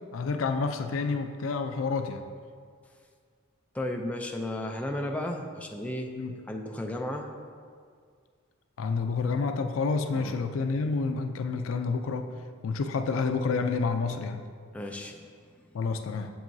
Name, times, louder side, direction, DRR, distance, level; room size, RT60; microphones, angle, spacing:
voice 1, 0.1-2.2 6.2-6.4 8.8-12.3 12.6-14.4 15.7-16.3, left 4 dB, 80° left, 7 dB, 0.4 m, -29 dB
voice 2, 3.7-6.1 6.5-7.3 10.1-10.3 14.7-15.3, left 1 dB, 5° left, 2 dB, 0.4 m, -34 dB
7.6 x 7.4 x 2.7 m, 2.1 s
head